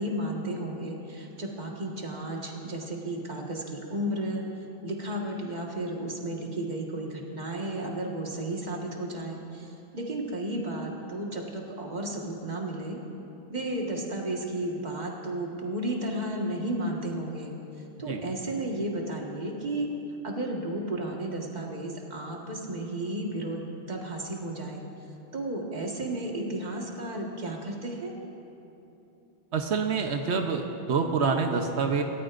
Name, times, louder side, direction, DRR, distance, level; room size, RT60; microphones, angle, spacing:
voice 1, 0.0-4.4 4.8-13.0 13.5-17.5 18.0-19.9 20.2-24.8 25.3-28.1, right 1 dB, 40° right, -1 dB, 1.7 m, -33 dB
voice 2, 29.5-32.0, right 5 dB, 90° right, 4 dB, 1.1 m, -27 dB
27.0 x 14.0 x 2.5 m, 3.0 s
omnidirectional pair, 1.1 m